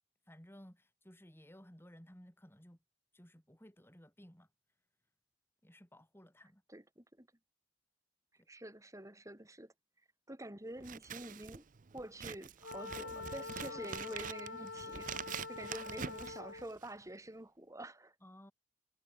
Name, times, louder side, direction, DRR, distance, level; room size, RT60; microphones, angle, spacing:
voice 1, 0.3-2.8 3.1-4.5 5.6-6.6 8.4-8.5 12.9-13.3 13.7-13.9 18.2-18.5, equal, 15° left, 6.2 m, -57 dB
voice 2, 6.7-7.3 8.5-9.7 10.3-11.7 11.9-15.1 15.5-18.1, right 1 dB, 15° right, 4.7 m, -48 dB
Scissors, 10.8-17.0, right 7 dB, 45° right, 0.6 m, -46 dB
Wind instrument woodwind instrument, 12.6-16.8, left 3 dB, 80° left, 2.1 m, -45 dB
head